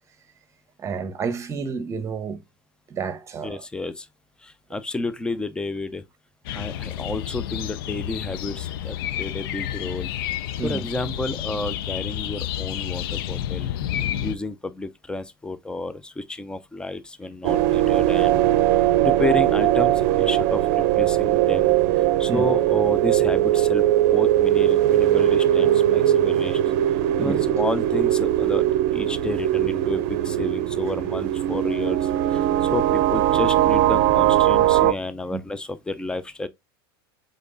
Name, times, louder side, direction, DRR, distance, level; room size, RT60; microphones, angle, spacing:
voice 1, 0.8-2.4 2.9-3.6 10.6-10.9 18.7-18.8 22.3-22.5 27.2-27.4 35.3-35.4, right 5 dB, 25° right, 1.0 m, -30 dB
voice 2, 3.4-4.1 4.4-6.0 6.5-10.1 10.6-13.7 14.2-18.4 19.0-21.7 22.2-23.9 24.1-26.6 27.2-28.7 28.9-36.5, left 2 dB, 5° left, 0.5 m, -31 dB
sound 1, 6.4-14.3, left 11 dB, 65° left, 0.5 m, -30 dB
sound 2, 17.4-34.9, right 13 dB, 60° right, 0.6 m, -20 dB
5.0 x 4.0 x 2.6 m
supercardioid pair, 120°, 13 cm